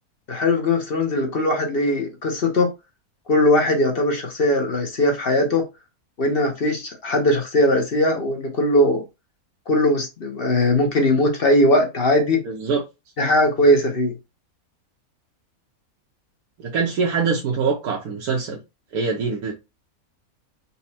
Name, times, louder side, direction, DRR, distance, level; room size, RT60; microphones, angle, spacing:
voice 1, 0.3-2.7 3.3-5.7 6.2-9.0 9.7-12.4 13.2-14.1, left 1 dB, 45° left, 0.9 m, -19 dB
voice 2, 12.4-12.8 16.6-18.6 18.9-19.5, right 5 dB, 85° right, 1.3 m, -23 dB
4.2 x 2.3 x 4.2 m
omnidirectional pair, 1.6 m